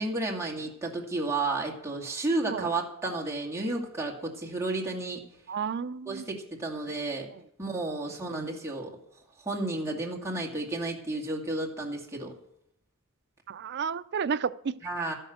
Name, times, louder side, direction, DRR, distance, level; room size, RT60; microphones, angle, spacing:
voice 1, 0.0-5.2 6.1-7.3 7.6-8.9 9.4-12.3 14.8-15.1, right 2 dB, 15° right, -1 dB, 2.2 m, -32 dB
voice 2, 5.5-6.3 8.3-8.4 13.5-14.8, right 6 dB, 50° right, 14 dB, 0.4 m, -32 dB
13.0 x 11.0 x 6.5 m, 0.75 s
head